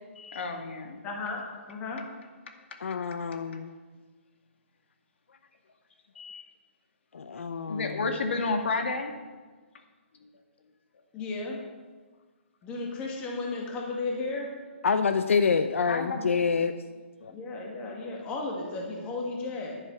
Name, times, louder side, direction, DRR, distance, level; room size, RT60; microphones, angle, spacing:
voice 1, 0.2-1.0 3.5-3.6 6.1-6.5 7.7-9.1 10.2-10.3 15.8-16.4, left 3 dB, 65° left, 4 dB, 2.1 m, -31 dB
voice 2, 1.0-2.1 11.1-11.6 12.6-14.5 17.3-19.8, left 3 dB, 15° left, 0 dB, 2.0 m, -34 dB
voice 3, 2.8-3.7 7.1-8.0 14.8-16.7 17.2-17.3, left 5 dB, 80° left, 9 dB, 0.7 m, -27 dB
11.0 x 9.3 x 7.0 m, 1.4 s
hypercardioid pair, 165°, 7 cm